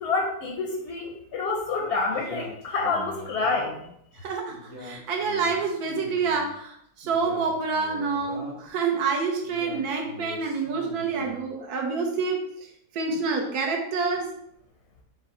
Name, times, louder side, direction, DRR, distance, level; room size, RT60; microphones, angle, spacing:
voice 1, 0.0-3.8, left 4 dB, 60° left, 1 dB, 0.7 m, -28 dB
Male speech man speaking, 2.1-3.9 4.5-6.5 7.0-8.7 9.4-11.4, left 1 dB, 55° right, 1.5 m, -42 dB
voice 2, 4.2-12.4 12.9-14.3, right 4 dB, 75° right, 1 dB, 1.1 m, -27 dB
5.1 x 2.1 x 4.1 m, 0.72 s
omnidirectional pair, 1.7 m